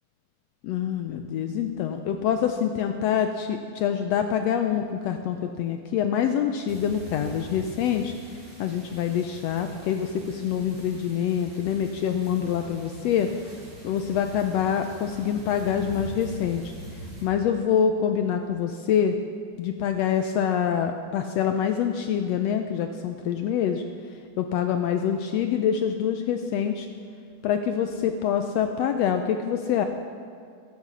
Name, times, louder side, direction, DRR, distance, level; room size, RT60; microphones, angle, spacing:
voice 1, 0.6-8.1 8.6-13.3 13.8-16.7 17.2-19.2 19.6-23.8 24.4-26.9 27.4-29.8, left 8 dB, 80° left, 7 dB, 1.5 m, -25 dB
sound 1, 6.7-17.2, right 1 dB, 50° right, 5.0 m, -42 dB
14.5 x 10.5 x 6.2 m, 2.2 s
omnidirectional pair, 3.5 m